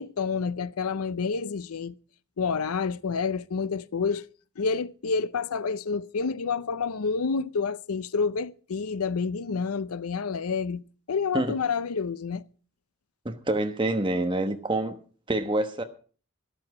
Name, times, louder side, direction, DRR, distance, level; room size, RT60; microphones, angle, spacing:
voice 1, 0.0-2.0 2.4-4.3 4.6-12.4, left 5 dB, 85° left, 0.6 m, -29 dB
voice 2, 13.2-15.0 15.3-15.8, right 2 dB, 20° right, 1.2 m, -26 dB
13.0 x 12.0 x 4.9 m
head